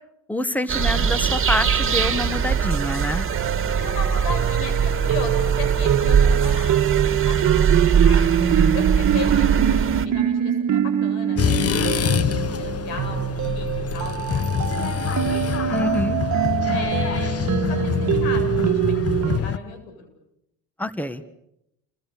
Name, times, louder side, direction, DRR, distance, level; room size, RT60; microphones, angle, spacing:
voice 1, 0.3-3.2 8.4-8.8 15.7-16.2 20.8-21.2, left 1 dB, 5° left, 13 dB, 1.7 m, -26 dB
sound 1, 0.7-10.1, right 7 dB, 35° right, 2.5 m, -21 dB
sound 2, 3.3-19.4, right 10 dB, 55° right, 1.7 m, -24 dB
voice 2, 3.7-6.8 7.1-15.1 15.7-15.8 16.7-20.1, left 4 dB, 90° left, 6 dB, 7.9 m, -36 dB
sound 3, 11.4-19.6, left 8 dB, 40° left, 1.3 m, -25 dB
29.5 x 24.5 x 7.0 m, 0.82 s
supercardioid pair, 80°, 35 cm